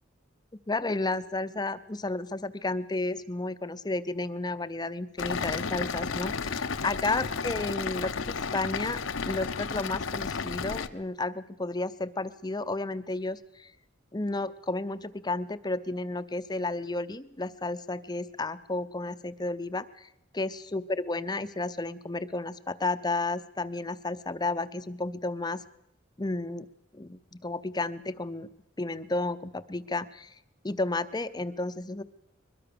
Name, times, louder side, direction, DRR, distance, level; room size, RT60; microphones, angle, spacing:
voice 1, 0.7-9.0 9.2-13.7 14.1-20.1 20.3-25.6 26.2-26.7 26.9-28.5 28.8-30.3 30.6-32.0, left 2 dB, 20° left, 12 dB, 0.7 m, -32 dB
sound 1, 5.2-10.9, left 5 dB, 80° left, 0.9 m, -32 dB
21.5 x 21.5 x 6.9 m, 0.81 s
head